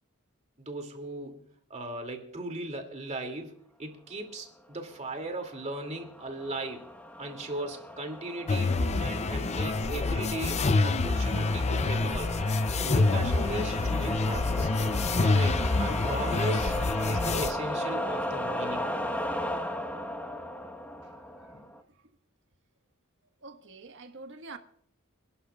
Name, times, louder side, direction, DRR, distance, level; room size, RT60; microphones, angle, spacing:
voice 1, 0.6-1.4 1.7-6.9 7.2-12.3 12.7-14.7 15.2-16.8 17.1-19.0, right 2 dB, 30° right, 2.5 m, -37 dB
sound 1, 5.3-21.8, equal, 5° left, 1.2 m, -36 dB
sound 2, 8.5-17.5, left 3 dB, 30° left, 0.5 m, -27 dB
voice 2, 21.0-21.5 21.9-22.0 23.4-24.6, right 3 dB, 60° right, 1.5 m, -47 dB
28.0 x 11.0 x 2.4 m
head